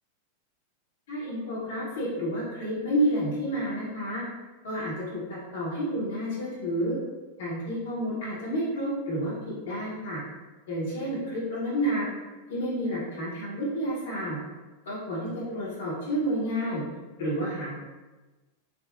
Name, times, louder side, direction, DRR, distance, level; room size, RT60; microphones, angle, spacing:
voice 1, 1.1-4.2 4.6-6.9 7.4-10.2 10.7-12.1 12.5-14.4 14.8-16.8 17.2-17.8, equal, 60° left, -7 dB, 1.0 m, -30 dB
3.6 x 2.2 x 2.3 m, 1.2 s
figure-of-eight pair, 90°, 0 cm